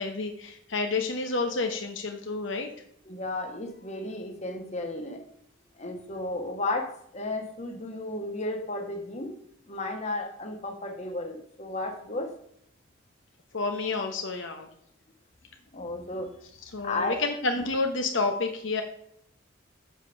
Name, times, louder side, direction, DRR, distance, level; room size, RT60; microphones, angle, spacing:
voice 1, 0.0-2.7 13.5-14.7 16.6-18.8, left 3 dB, 65° left, 4 dB, 1.0 m, -29 dB
voice 2, 3.1-5.2 5.8-9.4 9.7-12.3 15.7-16.3 16.8-17.2, left 2 dB, 35° left, 3 dB, 1.3 m, -33 dB
7.5 x 5.2 x 6.7 m, 0.71 s
head